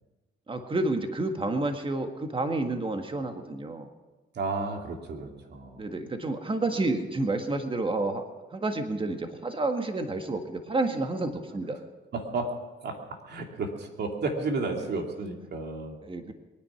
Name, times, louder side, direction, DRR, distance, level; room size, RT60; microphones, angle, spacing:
voice 1, 0.5-3.9 5.7-8.2 8.5-11.8 16.0-16.3, right 2 dB, 25° right, 6 dB, 1.7 m, -30 dB
voice 2, 4.3-5.8 12.1-12.6 12.8-16.0, right 3 dB, 55° right, 3 dB, 2.6 m, -32 dB
22.0 x 9.9 x 6.0 m, 1.2 s
cardioid pair, 90°, 20 cm